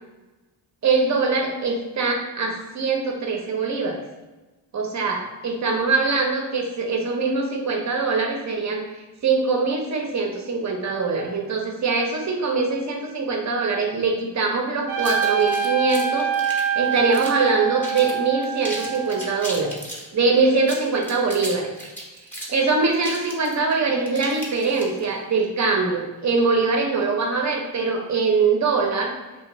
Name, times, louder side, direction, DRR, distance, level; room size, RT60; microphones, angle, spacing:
voice 1, 0.8-4.0 4.7-19.8 20.1-21.7 22.5-29.1, right 4 dB, 35° right, 2 dB, 0.6 m, -23 dB
Trumpet, 14.9-19.6, right 7 dB, 90° right, 0.6 m, -25 dB
sound 1, 15.0-17.5 17.8-18.2 18.4-20.1 20.6-25.1, right 1 dB, 5° left, 0.7 m, -36 dB
2.4 x 2.2 x 3.0 m, 1.2 s
supercardioid pair, 50°, 48 cm